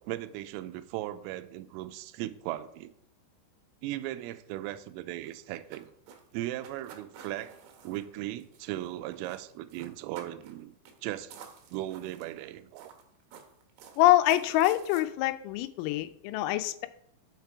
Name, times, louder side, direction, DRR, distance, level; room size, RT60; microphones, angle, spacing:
voice 1, 0.0-2.9 3.8-5.9 6.3-7.6 7.8-10.8 11.0-11.3 11.7-12.9, right 14 dB, 85° right, 11 dB, 3.2 m, -37 dB
sound 1, 5.2-8.9 9.1-9.4 9.7-10.6 10.9-11.0 11.3-12.4 12.8-15.0, right 7 dB, 70° right, 3.2 m, -51 dB
voice 2, 14.0-16.9, left 15 dB, 85° left, 10 dB, 3.3 m, -25 dB
12.5 x 7.5 x 4.8 m, 0.70 s
omnidirectional pair, 6.0 m